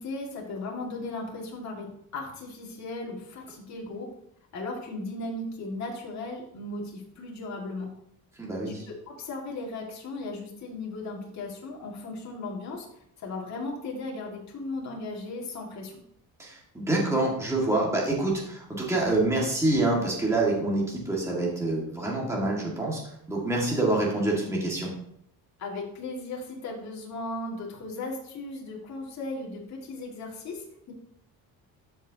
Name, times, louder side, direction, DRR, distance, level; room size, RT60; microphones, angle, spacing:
voice 1, 0.0-4.1 4.5-7.9 8.7-12.9 13.2-16.0 25.6-30.9, left 2 dB, 45° left, -2 dB, 2.0 m, -36 dB
voice 2, 8.4-8.9 16.4-23.0 23.3-24.9, right 2 dB, 5° right, -3 dB, 1.8 m, -26 dB
13.0 x 5.5 x 2.8 m, 0.73 s
cardioid pair, 155°, 39 cm